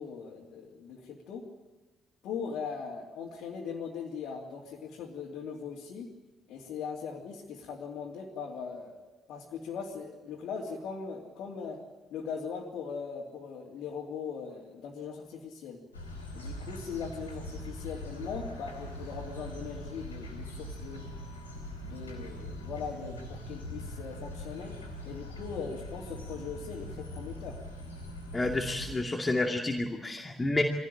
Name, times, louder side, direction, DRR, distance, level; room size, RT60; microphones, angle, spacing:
voice 1, 0.0-1.5 2.2-6.1 6.5-11.8 12.1-15.8 16.3-21.0 21.8-27.6, left 6 dB, 60° left, -4 dB, 2.9 m, -40 dB
sound 1, 15.9-29.0, equal, 90° left, 3.1 m, -42 dB
voice 2, 28.3-30.6, left 2 dB, 20° left, 2 dB, 2.4 m, -29 dB
23.5 x 17.0 x 8.9 m, 1.2 s
figure-of-eight pair, 45°, 0 cm